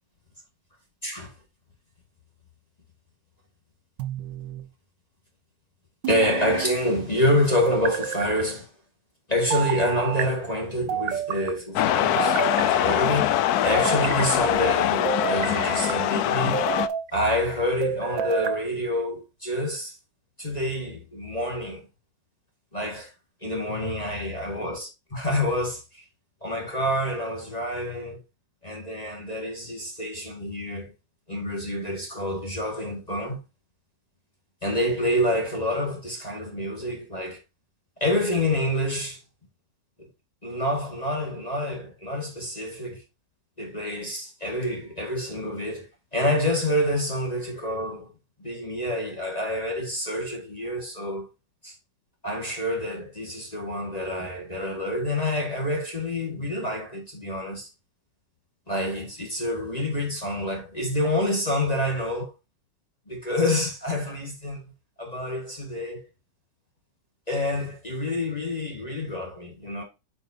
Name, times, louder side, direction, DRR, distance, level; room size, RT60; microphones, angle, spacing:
voice 1, 1.0-1.3 6.1-8.7 9.3-13.4 13.6-16.6 17.1-20.0 20.4-21.9 22.7-23.1 23.4-25.8 26.4-28.2 28.6-30.9 31.3-33.4 34.6-37.4 38.0-39.2 40.0-40.1 40.4-43.0 43.6-48.1 48.4-51.3 51.6-51.7 52.2-57.7 58.7-62.3 63.1-64.7 65.0-66.0 67.3-69.8, left 1 dB, 25° left, 1.8 m, -27 dB
sound 1, 4.0-4.7 6.0-6.8 7.7-8.4 9.5-10.3 10.9-11.5 12.2-13.0 13.7-14.3 15.0-16.0 16.5-17.1 17.8-18.6, right 9 dB, 85° right, 1.5 m, -30 dB
sound 2, 11.7-16.9, left 12 dB, 70° left, 1.0 m, -23 dB
8.9 x 5.3 x 2.7 m
omnidirectional pair, 1.9 m